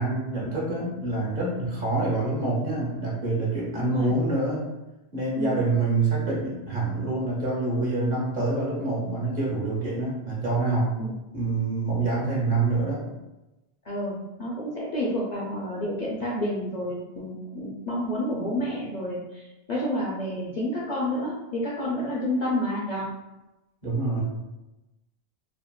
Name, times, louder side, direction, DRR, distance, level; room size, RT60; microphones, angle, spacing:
voice 1, 0.0-4.6 5.1-10.9 11.3-13.1 23.8-24.2, right 2 dB, 55° right, -5 dB, 1.0 m, -26 dB
voice 2, 3.7-4.1 5.3-5.6 11.0-11.1 13.8-23.1, left 1 dB, 55° left, -5 dB, 0.5 m, -29 dB
3.5 x 2.3 x 2.2 m, 1.0 s
omnidirectional pair, 1.1 m